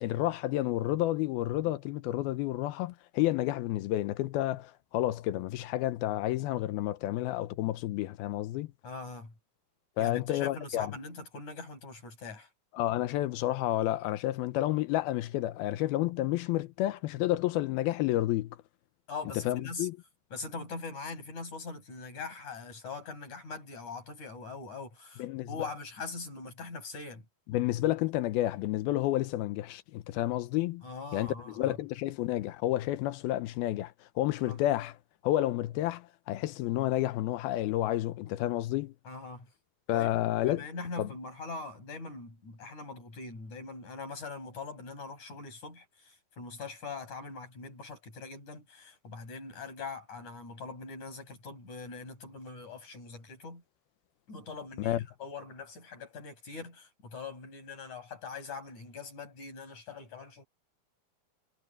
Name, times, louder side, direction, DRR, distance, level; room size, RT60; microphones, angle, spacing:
voice 1, 0.0-8.7 10.0-10.9 12.7-18.6 19.5-20.0 25.2-25.5 27.5-30.8 31.1-34.9 35.2-38.9 39.9-40.6 41.0-41.1 54.8-55.0, left 15 dB, 80° left, 2.6 m, -30 dB
voice 2, 8.8-9.3 10.0-12.5 19.1-19.9 20.3-27.2 30.8-31.8 34.4-34.6 39.1-39.5 39.9-40.1 40.4-53.6 54.3-60.4, left 4 dB, 50° left, 9.1 m, -42 dB
omnidirectional pair, 4.5 m